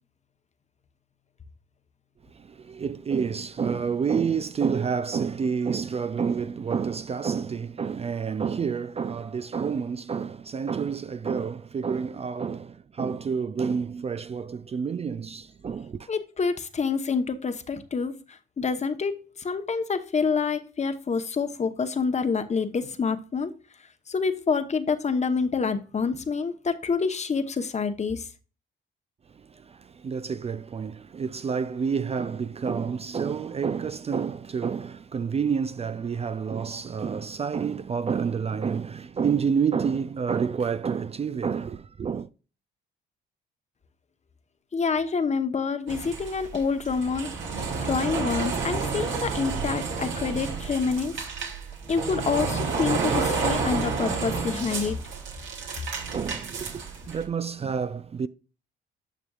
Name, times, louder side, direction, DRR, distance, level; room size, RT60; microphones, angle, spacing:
voice 1, 2.3-16.1 29.4-42.3 56.1-58.3, right 6 dB, 30° right, 0.4 m, -29 dB
voice 2, 16.1-18.2 18.6-23.5 24.1-28.2 44.7-47.3 47.8-51.1 51.9-55.0, left 5 dB, 35° left, 1.0 m, -27 dB
sound 1, 45.9-57.2, right 4 dB, 70° right, 2.3 m, -30 dB
10.0 x 6.0 x 2.4 m
cardioid pair, 90°, 20 cm